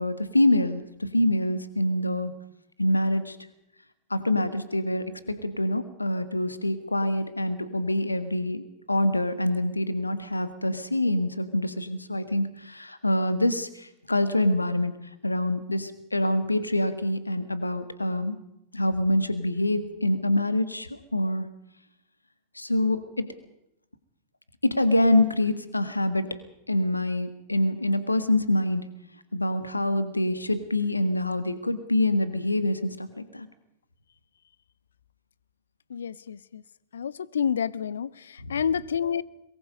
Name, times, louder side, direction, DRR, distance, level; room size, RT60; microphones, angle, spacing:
voice 1, 0.0-2.3 2.8-3.4 4.1-14.9 15.2-18.4 18.7-21.5 22.5-23.3 24.6-26.3 26.7-28.8 29.3-33.5, left 1 dB, 85° left, 1.7 m, -25 dB
voice 2, 35.9-36.6 36.9-39.2, left 7 dB, 65° left, 0.7 m, -29 dB
23.5 x 22.5 x 5.3 m
figure-of-eight pair, 90°, 0 cm